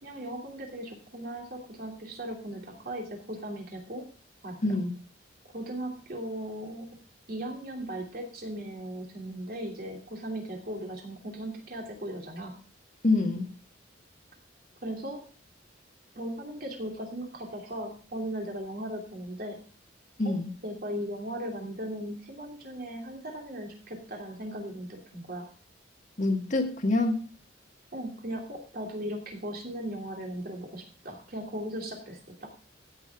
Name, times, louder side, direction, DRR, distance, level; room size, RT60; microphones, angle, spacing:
voice 1, 0.0-4.0 4.4-4.8 5.5-6.9 7.3-12.6 14.8-15.2 16.1-19.6 20.2-20.3 20.6-25.5 27.9-32.5, right 1 dB, 50° right, 1 dB, 2.9 m, -37 dB
voice 2, 13.0-13.5 20.2-20.5 26.2-27.2, left 2 dB, 40° left, 4 dB, 1.7 m, -26 dB
15.5 x 7.0 x 3.6 m, 0.40 s
head